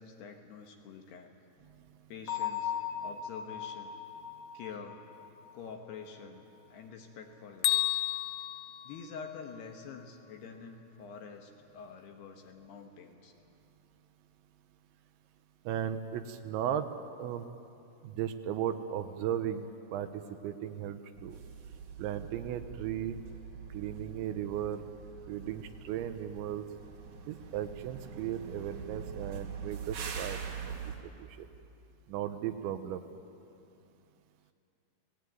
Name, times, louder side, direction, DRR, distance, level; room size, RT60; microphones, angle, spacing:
voice 1, 0.0-1.4 2.1-2.7 3.0-3.9 4.5-5.0 5.5-7.9 8.8-13.3, left 6 dB, 65° left, 4 dB, 3.1 m, -47 dB
Bell, 2.3-5.9, left 8 dB, 45° left, 3.2 m, -38 dB
Bell 2, 7.6-9.7, left 16 dB, 90° left, 3.5 m, -32 dB
voice 2, 15.7-16.9 17.2-17.5 18.0-21.4 22.0-23.2 23.7-24.8 25.3-26.7 27.3-30.4 30.7-31.5 32.1-33.0, right 10 dB, 75° right, 9 dB, 3.1 m, -36 dB
sound 1, 21.1-31.0, right 6 dB, 50° right, 2.6 m, -44 dB
29.0 x 18.5 x 9.4 m, 2.7 s
omnidirectional pair, 5.6 m